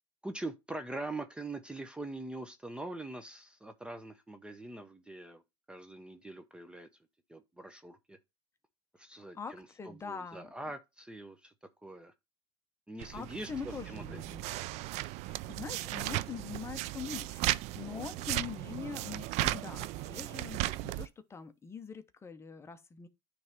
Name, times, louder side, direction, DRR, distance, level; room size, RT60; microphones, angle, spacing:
voice 1, 0.2-5.4 5.7-6.9 7.3-8.2 9.0-11.5 11.8-12.1 12.9-14.0 15.8-15.9 17.8-18.3, right 2 dB, 5° right, 0.7 m, -43 dB
voice 2, 9.3-10.5 13.1-14.5 15.2-23.1, left 6 dB, 20° left, 0.9 m, -43 dB
sound 1, 13.0-21.1, right 17 dB, 60° right, 0.4 m, -36 dB
9.4 x 3.3 x 5.0 m
supercardioid pair, 125°, 13 cm